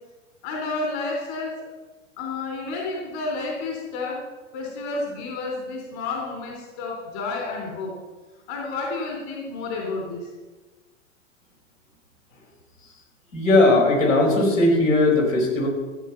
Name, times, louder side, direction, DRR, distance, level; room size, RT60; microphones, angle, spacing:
voice 1, 0.4-1.5 2.2-4.2 4.5-7.9 8.5-10.3, left 3 dB, 55° left, 0 dB, 3.6 m, -30 dB
voice 2, 13.3-15.7, left 2 dB, 85° left, -2 dB, 5.4 m, -18 dB
15.0 x 8.3 x 5.7 m, 1.2 s
hypercardioid pair, 100°, 38 cm